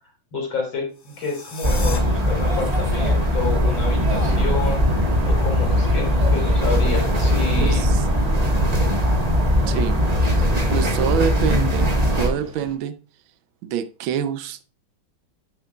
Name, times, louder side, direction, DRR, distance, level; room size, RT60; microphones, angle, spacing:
voice 1, 0.3-4.8 5.3-7.8 9.7-9.8, left 4 dB, 80° left, 4.9 m, -29 dB
sound 1, 0.9-2.0, left 4 dB, 40° left, 0.8 m, -36 dB
sound 2, 1.6-12.3, equal, 20° right, 1.4 m, -20 dB
sound 3, 4.1-12.7, equal, 5° right, 1.7 m, -38 dB
voice 2, 7.6-8.0 9.7-10.0 10.7-13.0 13.6-14.6, right 8 dB, 80° right, 1.5 m, -26 dB
11.0 x 7.7 x 2.3 m
omnidirectional pair, 2.2 m